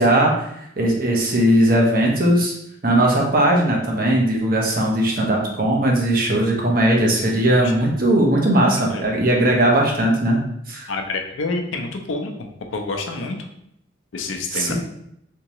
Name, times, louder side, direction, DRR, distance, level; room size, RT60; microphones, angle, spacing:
voice 1, 0.0-2.5 2.8-10.9 14.5-14.7, right 1 dB, 45° right, -1 dB, 0.7 m, -18 dB
voice 2, 10.9-12.3 12.7-13.4 14.1-14.7, left 3 dB, 85° left, 4 dB, 0.5 m, -27 dB
3.5 x 2.8 x 2.9 m, 0.75 s
head